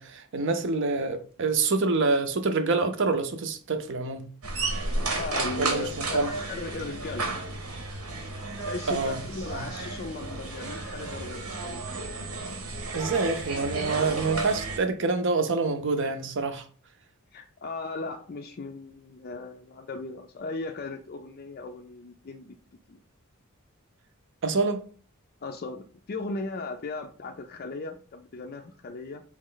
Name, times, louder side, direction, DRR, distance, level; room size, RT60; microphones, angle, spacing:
voice 1, 0.0-4.2 5.6-6.3 8.9-9.2 9.5-9.7 12.9-16.6 24.4-24.8, right 3 dB, 60° right, 0.6 m, -26 dB
sound 1, 4.4-14.8, right 3 dB, 90° right, 1.1 m, -33 dB
voice 2, 5.1-7.4 8.7-12.7 17.3-22.5 22.9-23.0 25.4-29.2, left 3 dB, 45° left, 0.4 m, -37 dB
4.2 x 3.1 x 3.8 m
head